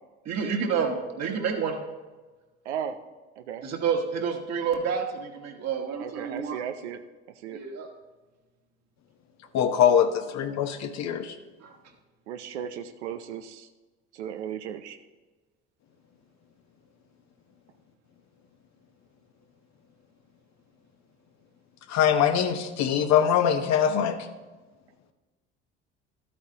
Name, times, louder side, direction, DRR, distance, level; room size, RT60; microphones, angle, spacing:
voice 1, 0.2-1.8 3.6-6.6 7.5-7.9 11.6-11.7, right 6 dB, 50° right, 2 dB, 1.7 m, -29 dB
voice 2, 2.7-3.0 3.4-3.6 6.0-7.0 7.4-7.6 12.3-13.7 14.1-15.0, right 9 dB, 85° right, 9 dB, 0.6 m, -35 dB
voice 3, 9.5-11.3 21.9-24.2, left 8 dB, 55° left, 8 dB, 1.0 m, -23 dB
12.5 x 8.6 x 2.9 m, 1.3 s
hypercardioid pair, 70°, 34 cm